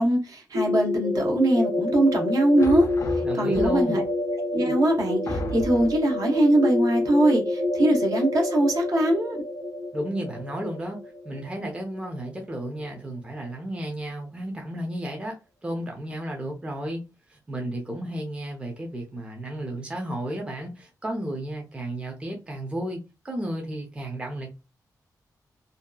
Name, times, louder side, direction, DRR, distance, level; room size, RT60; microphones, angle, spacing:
voice 1, 0.0-2.9 3.4-4.0 4.5-9.4, right 1 dB, 60° right, 0.8 m, -22 dB
sound 1, 0.5-12.3, left 2 dB, 90° right, 1.4 m, -28 dB
sound 2, 2.6-4.1 4.7-4.8 5.3-6.1, left 1 dB, 45° left, 0.4 m, -34 dB
voice 2, 3.2-4.0 9.9-11.0 11.2-17.0 17.3-24.5, right 1 dB, 15° right, 0.5 m, -33 dB
2.7 x 2.2 x 2.2 m
wide cardioid pair, 150°, 7 cm